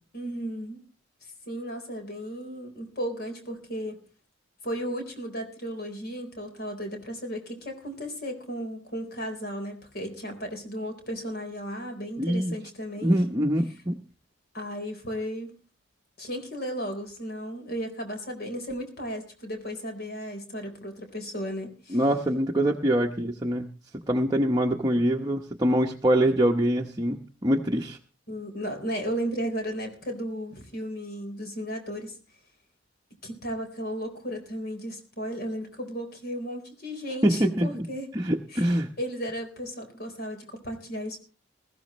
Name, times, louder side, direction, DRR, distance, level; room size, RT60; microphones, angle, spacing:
voice 1, 0.1-0.8 1.5-4.0 4.6-13.2 14.5-15.5 16.2-22.0 28.3-32.2 33.2-38.1 38.5-38.7 39.0-41.2, equal, 55° left, 5 dB, 4.0 m, -34 dB
voice 2, 12.2-12.5 13.0-14.0 21.9-23.7 24.1-28.0 37.2-37.8 38.1-38.9, right 1 dB, 20° right, 2 dB, 0.9 m, -24 dB
20.0 x 15.0 x 3.1 m, 0.34 s
head